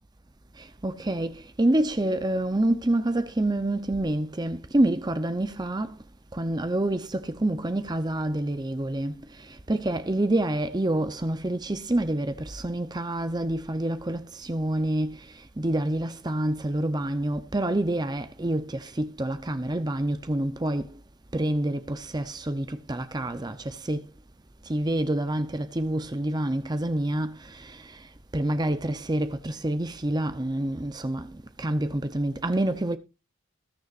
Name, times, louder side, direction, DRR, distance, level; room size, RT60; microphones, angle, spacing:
voice 1, 0.6-6.0 6.3-21.0 21.3-24.1 24.6-33.0, right 1 dB, 20° right, 0.7 m, -27 dB
20.5 x 6.8 x 2.5 m
head